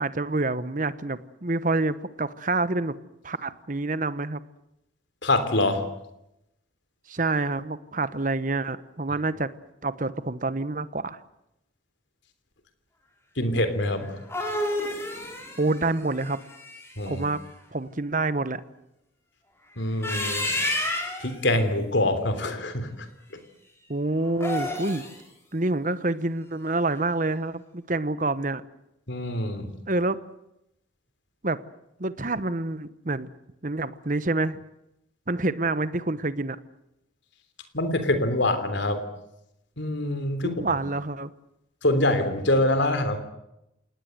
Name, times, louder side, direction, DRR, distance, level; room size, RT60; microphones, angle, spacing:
voice 1, 0.0-2.9 3.2-4.4 7.1-9.5 9.8-11.2 15.6-16.4 17.0-17.4 17.7-18.6 23.9-25.1 25.5-28.6 29.9-30.2 31.4-31.6 32.0-33.3 33.6-34.6 35.3-36.6 40.4-41.3, right 2 dB, 40° right, 14 dB, 1.1 m, -27 dB
voice 2, 5.2-5.8 13.4-14.2 17.0-17.2 19.8-20.6 21.2-23.1 29.1-29.7 37.7-39.0 39.8-40.8 41.8-43.2, left 1 dB, 65° left, 9 dB, 3.4 m, -25 dB
sound 1, 14.0-17.1 19.8-21.3 24.3-25.2, left 1 dB, 15° left, 5.2 m, -30 dB
28.0 x 19.0 x 8.0 m, 0.85 s
head